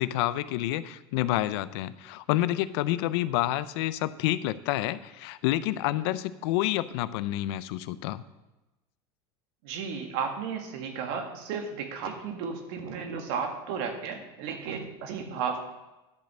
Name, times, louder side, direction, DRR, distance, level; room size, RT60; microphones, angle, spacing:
voice 1, 0.0-8.2, left 15 dB, 70° left, 15 dB, 0.6 m, -28 dB
voice 2, 9.6-15.7, right 6 dB, 70° right, 5 dB, 1.8 m, -34 dB
10.5 x 5.2 x 7.6 m, 1.0 s
supercardioid pair, 125°, 14 cm